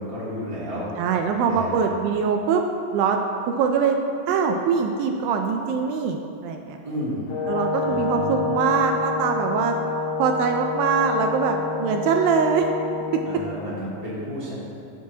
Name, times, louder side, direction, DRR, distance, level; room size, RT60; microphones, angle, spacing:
voice 1, 0.0-0.9 1.5-1.8 6.8-7.3 7.8-8.5 13.2-14.6, equal, 15° left, -10 dB, 1.1 m, -32 dB
voice 2, 1.0-2.6 2.9-3.2 3.5-4.0 4.3-6.8 7.5-9.8 10.2-12.7 13.1-13.2, right 6 dB, 80° right, 4 dB, 2.2 m, -23 dB
Brass instrument, 7.3-13.4, left 4 dB, 70° left, 2.6 m, -28 dB
16.5 x 6.0 x 2.8 m, 2.6 s
omnidirectional pair, 4.3 m